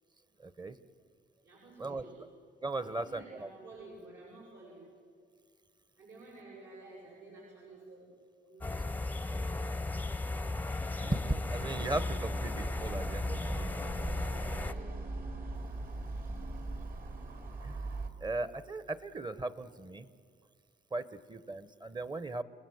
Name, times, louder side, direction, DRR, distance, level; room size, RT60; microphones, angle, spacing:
voice 1, 0.4-0.8 1.8-2.0 2.6-3.5 11.0-13.7 17.6-17.8 18.2-20.1 20.9-22.4, right 2 dB, 20° right, 14 dB, 1.1 m, -37 dB
voice 2, 1.4-2.2 2.7-4.8 6.0-8.1 8.4-8.7 14.2-15.0, right 2 dB, 65° right, -5 dB, 7.9 m, -52 dB
sound 1, 8.6-14.7, left 2 dB, 10° left, 0.7 m, -35 dB
sound 2, 11.6-18.1, right 2 dB, 45° right, 2.7 m, -40 dB
30.0 x 19.0 x 7.9 m, 2.1 s
cardioid pair, 90°, 20 cm